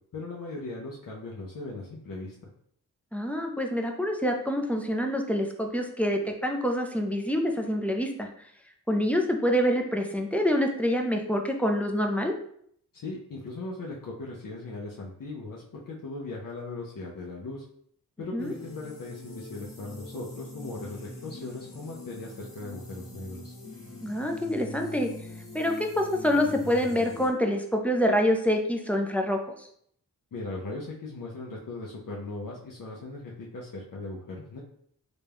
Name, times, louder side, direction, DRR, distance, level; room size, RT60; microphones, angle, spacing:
voice 1, 0.1-2.4 12.9-17.6 18.2-23.5 30.3-34.6, left 2 dB, 60° left, -3 dB, 0.7 m, -38 dB
voice 2, 3.1-8.3 8.9-12.3 18.3-18.5 24.0-25.1 25.5-29.4, equal, 5° left, 2 dB, 0.4 m, -26 dB
sound 1, 18.4-27.3, left 2 dB, 35° left, 1.1 m, -43 dB
3.9 x 2.3 x 3.4 m, 0.66 s
wide cardioid pair, 125°, 37 cm